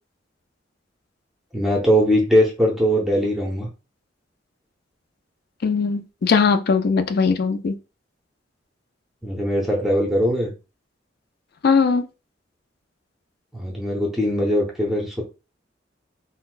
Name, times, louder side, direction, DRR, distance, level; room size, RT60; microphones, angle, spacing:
voice 1, 1.5-3.7 9.2-10.5 13.5-15.2, equal, ahead, 0.6 m, -20 dB
voice 2, 5.6-7.8 11.6-12.1, left 5 dB, 55° left, 0.4 m, -19 dB
3.9 x 2.0 x 2.4 m
head